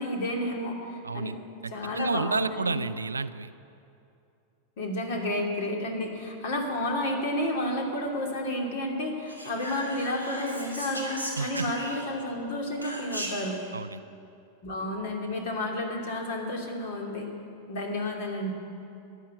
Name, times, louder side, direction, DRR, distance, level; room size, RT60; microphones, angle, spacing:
voice 1, 0.0-1.3 1.7-2.8 4.8-13.6 14.6-17.3 17.7-18.5, left 1 dB, 55° left, 1 dB, 2.7 m, -31 dB
voice 2, 1.0-1.4 1.6-3.5 11.4-11.7 13.7-14.0, right 4 dB, 75° right, 15 dB, 0.4 m, -31 dB
Whispering, 9.3-12.3 12.8-13.6, equal, 85° left, 2.9 m, -37 dB
14.0 x 10.5 x 8.5 m, 2.7 s
figure-of-eight pair, 90°, 0 cm